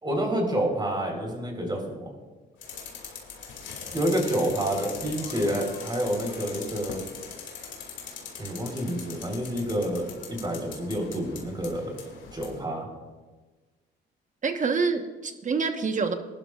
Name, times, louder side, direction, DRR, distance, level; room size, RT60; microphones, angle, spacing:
voice 1, 0.0-2.1 3.9-7.0 8.4-12.9, right 1 dB, 20° right, 1 dB, 4.2 m, -28 dB
sound 1, 2.6-12.6, left 6 dB, 70° left, 2.7 m, -41 dB
voice 2, 14.4-16.1, right 4 dB, 40° right, 6 dB, 1.3 m, -26 dB
21.0 x 12.0 x 2.5 m, 1.3 s
cardioid pair, 90°, 20 cm